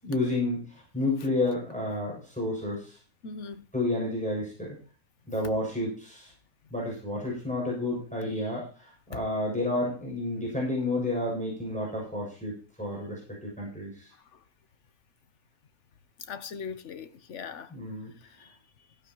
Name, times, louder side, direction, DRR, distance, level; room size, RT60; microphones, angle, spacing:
voice 1, 0.0-3.0 3.7-4.8 5.3-6.3 6.7-14.1 17.7-18.1, left 2 dB, 5° left, 6.8 m, -31 dB
voice 2, 3.2-3.6 14.3-14.4 16.3-17.7 18.3-18.6, left 5 dB, 55° left, 1.2 m, -40 dB
15.5 x 11.0 x 3.1 m
omnidirectional pair, 1.5 m